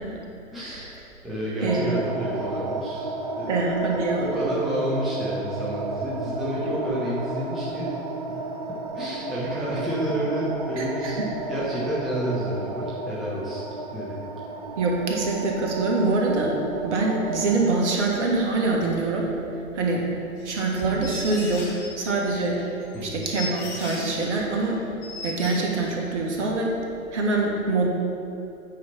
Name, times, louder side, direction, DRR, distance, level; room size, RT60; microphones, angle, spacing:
voice 1, 0.5-0.9 1.2-3.1 3.4-3.5 4.2-7.9 8.3-8.4 8.7-13.6 13.9-14.2 22.9-23.2, right 1 dB, ahead, -9 dB, 0.7 m, -29 dB
voice 2, 1.6-1.9 3.5-4.3 10.8-11.1 14.8-16.6 16.8-19.3 19.7-20.1 20.4-21.7 22.0-22.6 23.0-24.8 25.2-26.7 27.1-27.9, right 3 dB, 50° right, -1 dB, 1.6 m, -24 dB
sound 1, 1.7-18.0, right 3 dB, 30° right, 0.3 m, -33 dB
sound 2, 20.4-21.9 22.4-24.2 24.6-24.7 25.0-25.5, left 3 dB, 25° left, 1.9 m, -37 dB
8.5 x 4.9 x 5.7 m, 2.8 s
figure-of-eight pair, 120°, 44 cm